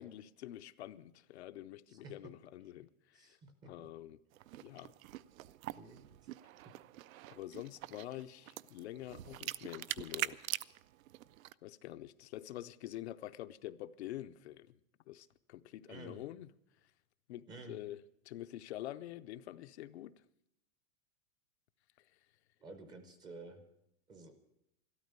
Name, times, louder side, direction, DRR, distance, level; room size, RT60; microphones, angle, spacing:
voice 1, 0.0-3.4 3.6-4.2 4.6-4.9 7.3-10.4 11.6-14.8 15.1-16.5 17.3-20.1, left 13 dB, 55° left, 11 dB, 0.6 m, -47 dB
voice 2, 3.1-3.9 5.8-6.1 15.9-16.2 17.5-17.8 22.6-23.6 24.1-24.3, right 3 dB, 10° right, 8 dB, 0.6 m, -51 dB
sound 1, 4.3-11.5, right 15 dB, 80° right, 0.6 m, -44 dB
13.0 x 13.0 x 6.6 m, 0.82 s
supercardioid pair, 175°, 40 cm